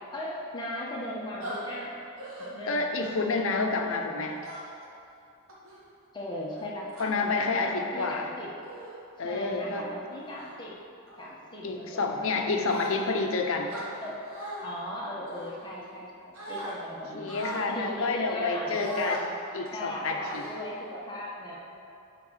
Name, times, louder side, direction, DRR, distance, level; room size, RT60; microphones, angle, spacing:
voice 1, 0.1-2.0 2.4-2.9 6.1-8.6 9.2-10.8 11.2-12.4 13.7-14.2 14.6-17.4 17.7-19.2 19.7-21.6, left 1 dB, 20° left, -5 dB, 1.3 m, -38 dB
sound 1, 1.4-1.6 2.2-2.5 3.0-3.3 4.4-4.9 5.5-5.8 6.5-7.1 7.9-8.1 8.6-9.0 9.5-9.7 10.2-10.5 11.1-11.3 12.7-13.3 13.7-14.6 15.3-16.0 16.3-16.7 17.3-17.7 18.7-19.2 19.7-19.8 20.2-20.9, right 1 dB, 65° right, 1.5 m, -41 dB
voice 2, 2.7-4.4 7.0-8.3 9.2-9.9 11.6-13.7 17.2-19.2 19.5-20.5, left 3 dB, 65° left, 3 dB, 0.8 m, -29 dB
9.5 x 3.8 x 6.4 m, 2.7 s
head